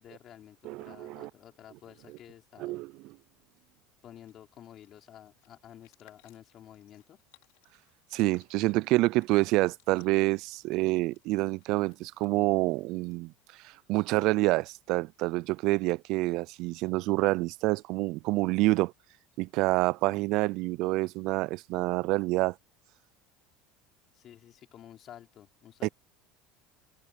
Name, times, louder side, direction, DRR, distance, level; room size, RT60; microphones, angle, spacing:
voice 1, 0.0-2.8 4.0-7.2 24.1-25.9, left 11 dB, 45° left, 5.4 m, -51 dB
voice 2, 0.6-1.3 2.6-3.1 8.1-13.3 13.6-18.9 19.4-22.6 25.8-25.9, right 21 dB, 65° right, 0.4 m, -27 dB
sound 1, 1.7-2.3 3.7-3.8 4.0-13.6, left 27 dB, 75° left, 5.1 m, -67 dB
supercardioid pair, 100°, 0 cm